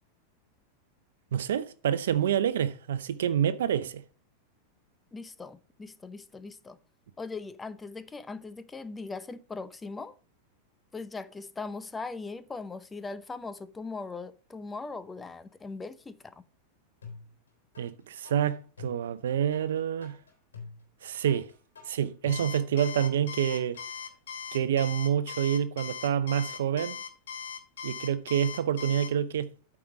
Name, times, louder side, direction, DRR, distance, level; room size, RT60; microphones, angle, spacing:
voice 1, 1.3-4.0 17.8-20.2 21.0-21.5 21.9-23.8 24.5-27.0 27.8-29.5, right 9 dB, 75° right, 0.6 m, -27 dB
voice 2, 5.1-6.8 7.2-10.1 10.9-16.3, left 3 dB, 15° left, 0.8 m, -40 dB
sound 1, 17.0-17.9 18.2-23.9, left 5 dB, 90° left, 3.1 m, -47 dB
Alarm, 22.3-29.1, left 7 dB, 75° left, 1.8 m, -39 dB
8.7 x 4.9 x 5.9 m
hypercardioid pair, 100°, 0 cm